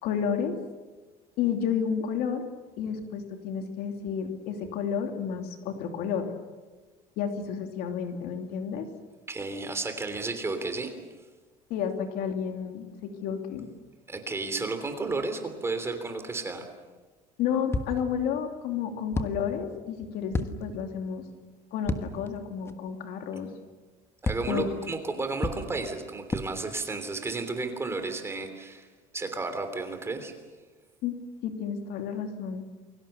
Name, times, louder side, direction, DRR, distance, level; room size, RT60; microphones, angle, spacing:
voice 1, 0.0-0.5 1.4-2.4 2.8-6.3 7.2-8.9 11.7-13.7 17.4-21.2 21.7-23.5 24.5-24.7 31.0-31.1 31.4-32.6, left 7 dB, 70° left, 4 dB, 2.8 m, -31 dB
voice 2, 9.3-11.0 14.1-16.7 24.2-28.9 29.1-30.3, right 3 dB, 15° right, 7 dB, 3.2 m, -32 dB
sound 1, 17.7-18.3 19.1-19.7 20.3-21.0 21.8-22.4 22.7-22.8 24.3-24.8 25.4-25.9 26.3-26.8, left 2 dB, 15° left, 1.4 m, -33 dB
28.5 x 23.5 x 7.0 m, 1.3 s
cardioid pair, 150°, 16 cm